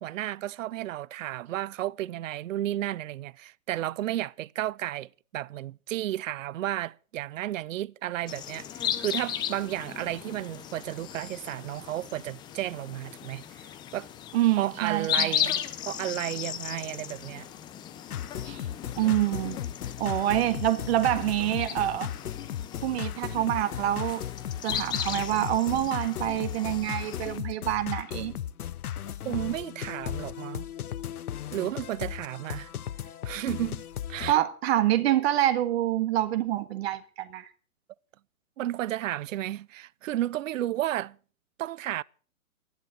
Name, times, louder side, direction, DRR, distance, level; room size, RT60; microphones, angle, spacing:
voice 1, 0.0-14.1 14.6-17.5 29.2-30.7 31.5-32.7 33.2-33.8 34.1-34.4 38.6-41.2 41.6-42.0, right 13 dB, 60° right, 0.6 m, -33 dB
sound 1, 8.3-27.4, left 10 dB, 10° left, 0.6 m, -36 dB
voice 2, 14.3-15.3 18.4-18.6 19.0-19.6 20.0-22.1 22.8-24.2 24.6-28.4 34.3-37.4, right 13 dB, 45° right, 1.6 m, -26 dB
sound 2, 18.1-34.3, left 10 dB, 85° left, 0.7 m, -36 dB
13.0 x 11.5 x 7.5 m
hypercardioid pair, 135°, 44 cm